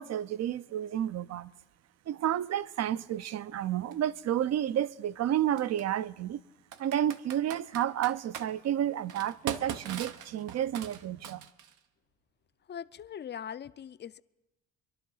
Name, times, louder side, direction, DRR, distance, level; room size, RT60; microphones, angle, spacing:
voice 1, 0.0-1.5 2.1-6.4 6.8-11.4, right 11 dB, 60° right, 0.5 m, -31 dB
Computer keyboard, 3.9-4.0 5.6-5.8 6.7-8.5 9.1-11.8, right 8 dB, 85° right, 0.8 m, -40 dB
voice 2, 12.6-14.2, left 8 dB, 35° left, 0.4 m, -41 dB
25.5 x 11.5 x 3.9 m
cardioid pair, 90°, 30 cm